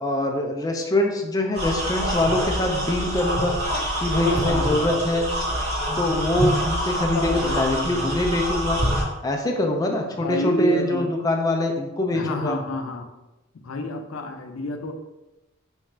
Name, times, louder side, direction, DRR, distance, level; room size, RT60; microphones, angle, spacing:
voice 1, 0.0-3.5 4.0-5.2 6.0-8.8 9.2-12.6, left 1 dB, 20° left, 1 dB, 0.4 m, -24 dB
sound 1, 1.5-9.0, equal, 35° right, 1.1 m, -26 dB
voice 2, 4.0-4.9 7.1-8.1 10.1-11.1 12.1-13.1 13.6-14.9, left 1 dB, 90° left, 5 dB, 0.4 m, -28 dB
3.1 x 2.4 x 4.3 m, 1.0 s
head